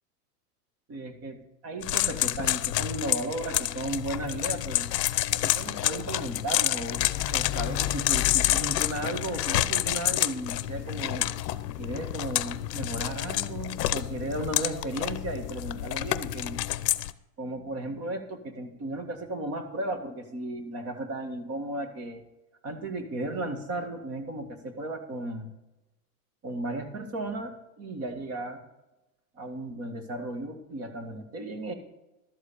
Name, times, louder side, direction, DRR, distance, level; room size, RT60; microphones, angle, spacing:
voice 1, 0.9-1.4 1.6-4.9 5.3-11.3 11.8-16.6 17.4-22.2 22.6-25.5 26.4-28.6 29.4-31.7, right 2 dB, 30° right, 8 dB, 1.7 m, -35 dB
sound 1, 1.8-17.1, left 14 dB, 85° left, 0.7 m, -29 dB
sound 2, 6.8-9.3, left 12 dB, 45° left, 0.7 m, -34 dB
12.0 x 4.8 x 8.5 m, 0.98 s
supercardioid pair, 125°, 48 cm